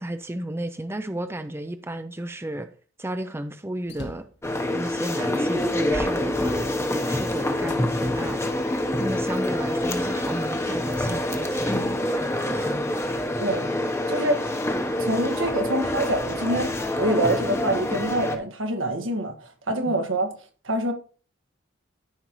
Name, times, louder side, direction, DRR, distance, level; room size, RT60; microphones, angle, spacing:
voice 1, 0.0-2.7 3.0-4.2 4.7-6.6 7.1-8.5 9.0-12.8 19.9-20.1, right 1 dB, 15° right, 0.5 m, -33 dB
sound 1, 3.9-4.4 5.1-5.2 5.6-7.0 7.7-7.8 8.6-9.6, left 1 dB, 60° left, 1.3 m, -41 dB
sound 2, 4.4-18.4, left 1 dB, 15° left, 0.9 m, -26 dB
voice 2, 13.4-13.7 14.1-14.4 15.0-16.7 17.0-20.3 20.6-20.9, right 1 dB, 85° right, 1.6 m, -25 dB
13.5 x 5.2 x 3.0 m
head